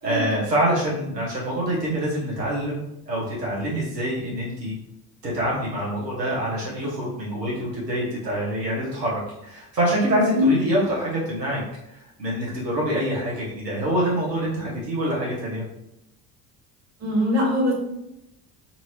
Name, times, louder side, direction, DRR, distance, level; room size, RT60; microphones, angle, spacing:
voice 1, 0.0-4.7 5.2-11.6 12.2-15.6, right 1 dB, 85° right, -6 dB, 1.1 m, -25 dB
voice 2, 17.0-17.7, left 1 dB, 35° right, -2 dB, 1.3 m, -21 dB
4.3 x 2.7 x 2.8 m, 0.86 s
figure-of-eight pair, 55°, 48 cm